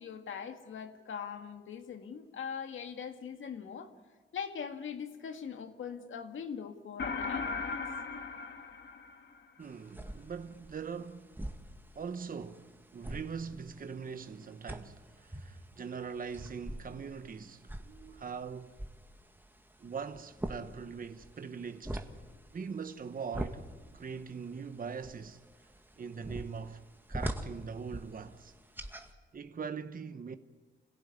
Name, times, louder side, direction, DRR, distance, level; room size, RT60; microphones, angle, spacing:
voice 1, 0.0-3.9 4.3-7.8, left 7 dB, 85° left, 2.0 m, -41 dB
sound 1, 7.0-9.6, left 4 dB, 60° left, 1.7 m, -37 dB
sound 2, 9.6-29.1, right 1 dB, 10° right, 2.0 m, -45 dB
voice 2, 9.6-11.3 11.9-18.7 19.8-22.1 22.5-23.6 23.9-25.4 26.0-26.8 27.1-28.5 29.3-30.4, right 6 dB, 45° right, 1.0 m, -42 dB
27.0 x 17.0 x 9.8 m
cardioid pair, 85°, 20 cm